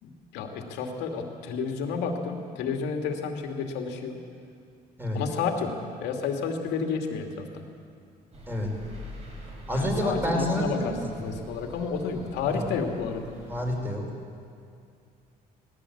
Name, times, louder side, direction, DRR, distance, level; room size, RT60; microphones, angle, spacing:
voice 1, 0.0-4.2 5.1-5.7 6.0-7.6 9.7-13.3, left 5 dB, 90° left, 4 dB, 2.4 m, -31 dB
sound 1, 8.3-13.8, left 1 dB, 40° right, 5.3 m, -44 dB
voice 2, 9.7-11.0 12.5-12.6 13.5-14.0, equal, 10° right, 0 dB, 4.8 m, -28 dB
19.0 x 16.5 x 8.6 m, 2.4 s
cardioid pair, 110°, 17 cm